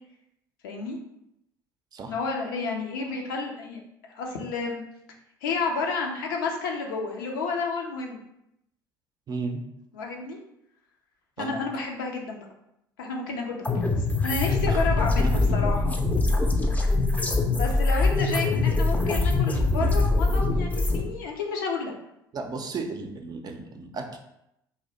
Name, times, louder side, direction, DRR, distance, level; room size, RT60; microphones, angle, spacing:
voice 1, 0.6-1.0 2.1-3.8 4.1-4.8 5.4-8.2 9.9-10.4 11.4-12.5 13.0-13.7 14.2-15.9 17.6-21.9, left 4 dB, 75° left, 1 dB, 0.5 m, -30 dB
voice 2, 9.3-9.6 11.4-11.6 14.7-14.8 15.2-15.7 22.3-24.2, right 4 dB, 35° right, 4 dB, 0.5 m, -34 dB
sound 1, 13.6-21.0, left 3 dB, 15° left, 0.5 m, -23 dB
2.6 x 2.1 x 3.9 m, 0.82 s
figure-of-eight pair, 60°, 11 cm